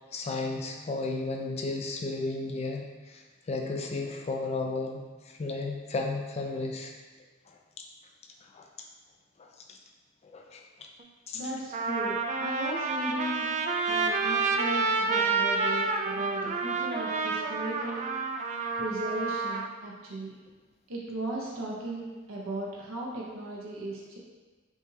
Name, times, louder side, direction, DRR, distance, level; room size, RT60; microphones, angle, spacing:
voice 1, 0.1-6.9 7.8-7.9 8.5-8.6 9.4-9.8 10.2-10.6 11.3-11.4, left 3 dB, 30° left, 2 dB, 0.4 m, -34 dB
Trumpet, 11.0-11.1 11.7-19.7, right 4 dB, 35° right, 0.3 m, -29 dB
voice 2, 11.3-13.5 13.8-18.0 18.8-20.4 20.9-24.2, right 1 dB, 80° right, -3 dB, 0.7 m, -36 dB
5.3 x 2.3 x 3.2 m, 1.3 s
head